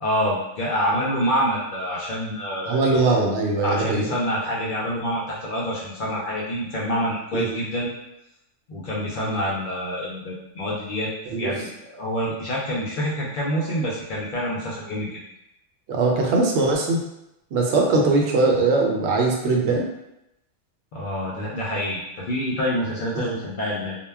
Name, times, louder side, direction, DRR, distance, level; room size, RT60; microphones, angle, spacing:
voice 1, 0.0-2.9 3.6-7.9 8.7-11.1 11.4-15.2 20.9-24.0, equal, 60° left, -5 dB, 0.5 m, -27 dB
voice 2, 2.7-4.0 7.3-7.6 11.3-11.5 15.9-17.0 17.5-19.9 23.2-23.4, right 3 dB, 70° right, 0 dB, 0.8 m, -21 dB
2.2 x 2.1 x 3.3 m, 0.86 s
omnidirectional pair, 1.3 m